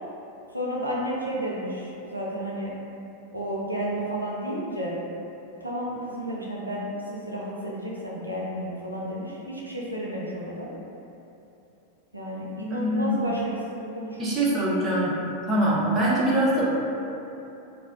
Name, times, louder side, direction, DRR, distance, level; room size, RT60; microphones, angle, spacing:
voice 1, 0.5-2.7 3.3-4.9 5.6-10.7 12.1-14.4, equal, 85° right, -5 dB, 0.3 m, -32 dB
voice 2, 12.7-13.1 14.2-15.1 15.5-16.7, right 1 dB, 25° right, -7 dB, 0.6 m, -23 dB
2.3 x 2.1 x 3.4 m, 2.9 s
figure-of-eight pair, 90°, 0 cm